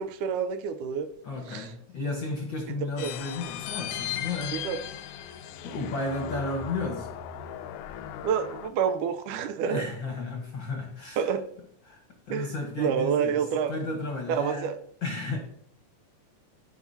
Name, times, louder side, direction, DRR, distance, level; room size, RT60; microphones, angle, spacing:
voice 1, 0.0-1.1 1.5-1.7 3.0-3.1 4.5-4.8 8.2-9.8 11.2-11.4 12.3-12.5 12.8-13.8 14.3-14.7, right 7 dB, 90° right, 2.2 m, -28 dB
voice 2, 1.2-4.7 5.2-5.4 5.6-7.1 9.6-11.3 11.8-12.0 12.3-14.7 15.0-15.4, left 3 dB, 55° left, 1.4 m, -33 dB
sound 1, 3.0-8.7, left 10 dB, 85° left, 2.1 m, -37 dB
14.5 x 4.9 x 2.7 m
omnidirectional pair, 3.6 m